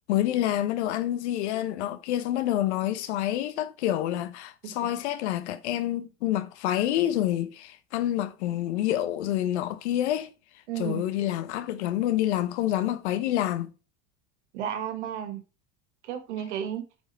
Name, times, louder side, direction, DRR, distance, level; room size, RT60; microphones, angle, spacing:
voice 1, 0.1-10.3 10.8-13.7, left 13 dB, 80° left, 1.1 m, -27 dB
voice 2, 10.7-11.0 14.5-15.4 16.0-16.8, right 9 dB, 85° right, 1.7 m, -33 dB
9.3 x 4.8 x 4.2 m
hypercardioid pair, 85°, 34 cm